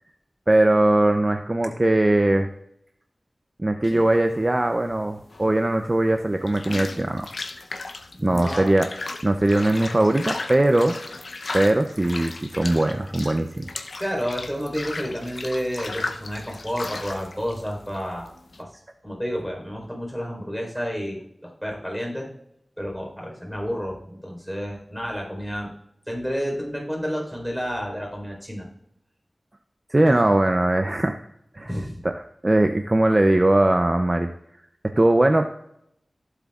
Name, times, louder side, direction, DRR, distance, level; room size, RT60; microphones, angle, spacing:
voice 1, 0.5-2.5 3.6-7.3 8.2-8.9 9.2-11.0 11.5-13.7 29.9-31.2 31.5-31.7 32.0-34.3 34.8-35.5, right 1 dB, 30° right, 6 dB, 0.6 m, -20 dB
sound 1, 3.8-18.6, left 3 dB, 80° left, 0.7 m, -36 dB
voice 2, 8.1-8.7 14.0-18.3 18.6-18.7 19.0-22.3 22.8-25.7 26.1-28.7 30.0-30.2 31.6-32.0, equal, 5° left, -1 dB, 4.1 m, -30 dB
15.5 x 7.9 x 2.4 m, 0.76 s
wide cardioid pair, 70°, 0 cm